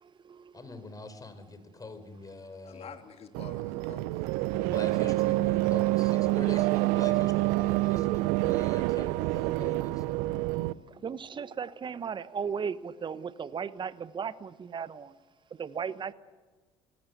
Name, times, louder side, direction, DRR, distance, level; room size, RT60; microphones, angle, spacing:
voice 1, 0.0-0.5 11.0-15.1 15.6-16.1, right 6 dB, 35° right, 16 dB, 1.1 m, -36 dB
voice 2, 0.5-3.0 4.5-10.1, left 3 dB, 25° left, 10 dB, 4.3 m, -44 dB
voice 3, 2.6-4.6 10.9-11.1, left 7 dB, 45° left, 7 dB, 2.7 m, -49 dB
sound 1, 3.3-10.7, right 19 dB, 70° right, 0.6 m, -27 dB
25.5 x 18.5 x 8.0 m, 1.4 s
hypercardioid pair, 60°, 14 cm